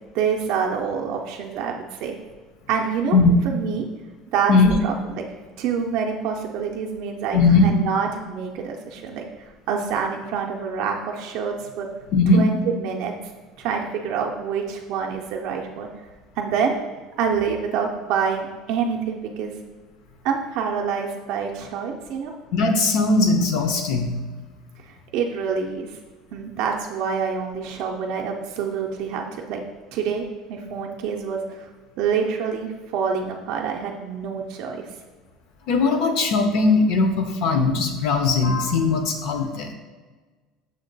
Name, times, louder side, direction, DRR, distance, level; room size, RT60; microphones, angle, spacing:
voice 1, 0.1-2.2 2.7-3.2 3.4-3.8 4.3-4.5 4.8-5.3 5.6-9.2 9.7-11.9 12.3-13.1 13.6-15.9 16.4-16.7 17.2-19.6 20.2-22.3 25.1-25.9 26.3-29.6 29.9-31.7 32.0-34.9, right 6 dB, 50° right, 1 dB, 0.4 m, -26 dB
voice 2, 7.3-7.7 12.1-12.4 22.5-24.1 35.7-39.7, left 3 dB, 50° left, 6 dB, 0.5 m, -19 dB
6.3 x 2.2 x 3.9 m, 1.3 s
cardioid pair, 180°, 0 cm